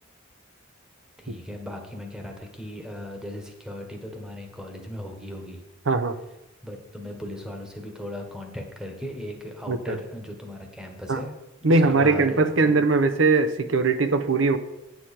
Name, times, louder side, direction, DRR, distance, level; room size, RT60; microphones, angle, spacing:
voice 1, 1.2-5.6 6.6-11.3 11.7-12.7, equal, 5° right, 2 dB, 1.2 m, -37 dB
voice 2, 5.9-6.2 9.7-10.0 11.1-11.2 11.6-14.6, right 3 dB, 70° right, 10 dB, 0.7 m, -21 dB
9.3 x 7.0 x 4.3 m, 0.95 s
head